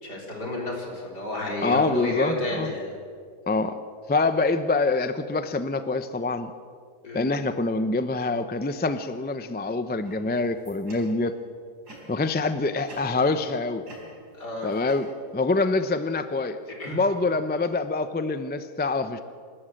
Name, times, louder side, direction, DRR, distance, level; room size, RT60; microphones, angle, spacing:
voice 1, 0.0-3.0 7.0-7.3 14.4-14.7 16.8-17.0, left 1 dB, 80° left, -1 dB, 4.5 m, -31 dB
voice 2, 1.6-2.7 3.5-3.8 4.1-6.5 7.1-11.3 12.1-13.9 14.6-15.1 15.3-16.6 16.9-19.2, left 3 dB, 15° left, 10 dB, 0.3 m, -25 dB
sound 1, 10.0-11.4 11.8-12.3 12.9-13.5 13.8-15.5, right 1 dB, 75° right, 5.1 m, -48 dB
28.0 x 13.0 x 7.8 m, 2.1 s
omnidirectional pair, 1.7 m